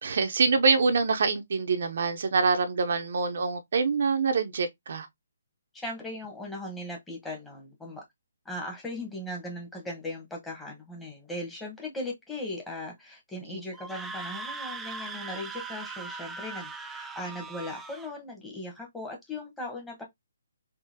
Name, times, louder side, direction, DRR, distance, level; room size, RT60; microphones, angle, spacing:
voice 1, 0.0-5.1 13.5-13.6, right 4 dB, 60° right, 0.6 m, -25 dB
voice 2, 5.7-8.0 8.4-20.0, left 1 dB, 10° left, 1.2 m, -38 dB
Screaming, 13.7-18.1, right 4 dB, 10° right, 0.4 m, -39 dB
3.7 x 2.7 x 2.7 m
figure-of-eight pair, 140°, 0 cm